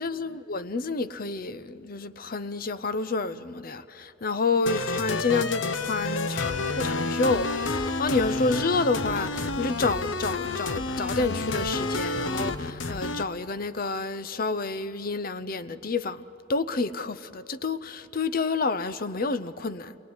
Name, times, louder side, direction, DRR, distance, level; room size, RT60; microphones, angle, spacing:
voice 1, 0.0-16.2 16.5-20.0, left 3 dB, 50° left, 0.7 m, -29 dB
sound 1, 4.7-13.2, left 3 dB, 80° left, 1.0 m, -29 dB
28.0 x 21.5 x 9.8 m
head